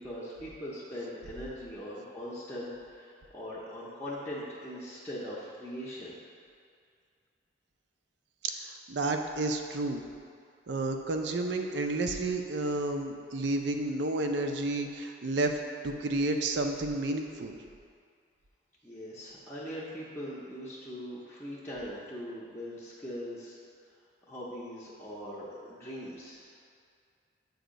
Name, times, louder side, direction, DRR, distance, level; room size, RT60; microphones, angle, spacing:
voice 1, 0.0-6.1 18.8-23.6 24.3-26.5, equal, 10° left, -8 dB, 0.6 m, -41 dB
voice 2, 8.9-10.0 10.7-15.6 15.8-17.6, right 2 dB, 65° right, 4 dB, 0.5 m, -31 dB
7.7 x 2.7 x 5.0 m, 2.3 s
head